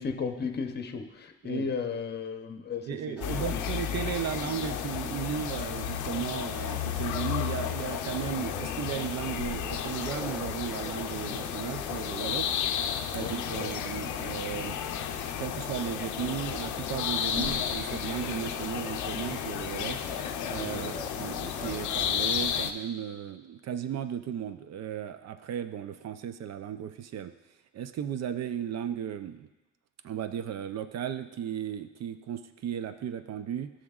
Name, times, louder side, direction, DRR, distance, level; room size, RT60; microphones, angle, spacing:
voice 1, 0.0-3.6 12.9-13.7 20.7-21.0, left 5 dB, 35° left, 6 dB, 0.7 m, -35 dB
voice 2, 2.9-12.5 13.1-20.0 20.5-27.3 27.7-29.5 30.0-33.7, right 9 dB, 60° right, 10 dB, 0.5 m, -35 dB
sound 1, 3.2-22.7, left 9 dB, 75° left, 0.5 m, -33 dB
sound 2, 3.2-22.3, equal, 5° right, 0.7 m, -45 dB
13.0 x 6.3 x 2.4 m, 1.1 s
cardioid pair, 90°, 30 cm